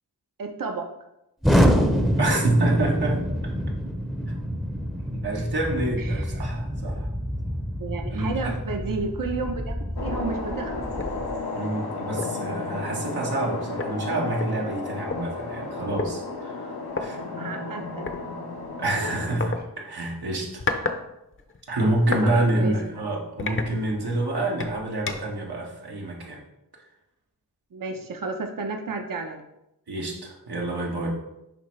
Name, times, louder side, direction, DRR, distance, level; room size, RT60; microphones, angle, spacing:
voice 1, 0.4-0.9 6.0-6.2 7.8-9.8 10.0-10.8 17.4-18.0 22.2-22.7 27.7-29.4, right 4 dB, 60° right, 4 dB, 0.8 m, -32 dB
Explosion, 1.4-11.4, equal, ahead, 0.7 m, -26 dB
voice 2, 2.2-3.3 4.3-4.6 5.0-7.1 8.1-9.0 11.5-17.2 18.8-20.6 21.7-26.4 29.9-31.1, right 1 dB, 85° right, -2 dB, 1.5 m, -27 dB
sound 1, 10.0-19.4, left 3 dB, 80° left, 1.1 m, -33 dB
sound 2, 11.0-11.2 11.6-11.8 12.2-12.5 13.4-13.5 13.8-15.2 16.0-16.1 16.9-17.1 18.1-18.2 19.4-19.6 20.3-21.0 21.3-22.3 22.7-22.9 23.4-24.2 24.6-25.4, left 4 dB, 35° left, 0.7 m, -31 dB
10.5 x 3.5 x 3.2 m, 0.87 s
wide cardioid pair, 75°, 37 cm